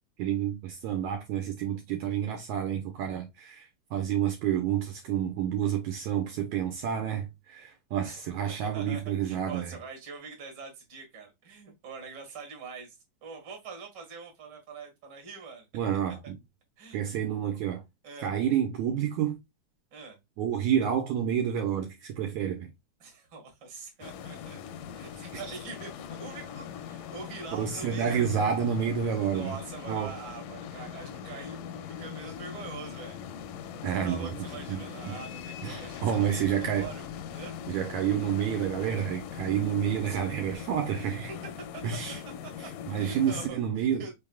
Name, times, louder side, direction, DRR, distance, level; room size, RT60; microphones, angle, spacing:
voice 1, 0.2-9.8 15.7-16.3 16.9-17.8 18.2-19.4 20.4-22.7 25.3-25.6 27.6-29.6 29.9-30.2 33.8-35.2 35.6-36.9 37.7-41.3 41.8-42.2 42.6-44.1, right 9 dB, 75° right, 2.0 m, -29 dB
voice 2, 8.6-15.7 16.8-17.0 18.0-18.3 19.9-20.2 23.0-24.6 24.9-25.9 26.2-28.2 29.3-33.2 34.0-37.1 37.3-37.6 40.0-40.2 41.0-41.2 41.7-41.8 42.6-42.7 43.0-44.1, right 4 dB, 40° right, 2.0 m, -44 dB
sound 1, 24.0-43.5, left 8 dB, 85° left, 2.2 m, -41 dB
5.5 x 3.5 x 2.3 m
omnidirectional pair, 3.7 m